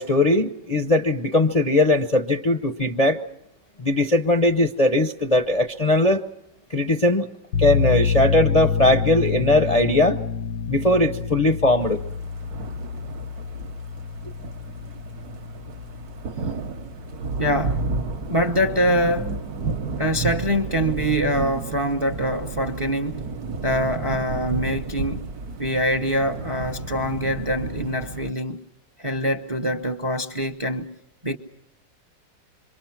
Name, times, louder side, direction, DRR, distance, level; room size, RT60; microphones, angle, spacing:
voice 1, 0.0-3.2 3.8-6.3 6.7-7.3 7.6-10.2 10.7-12.0, left 1 dB, 35° left, 0.6 m, -19 dB
sound 1, 7.5-18.8, left 6 dB, 90° left, 2.0 m, -28 dB
sound 2, 11.8-28.3, right 3 dB, 60° right, 1.5 m, -32 dB
voice 2, 17.4-17.8 18.3-19.4 20.0-23.3 23.6-25.2 25.6-28.6 29.0-30.9 31.2-31.4, equal, 25° right, 0.7 m, -24 dB
27.0 x 24.5 x 5.9 m
omnidirectional pair, 1.9 m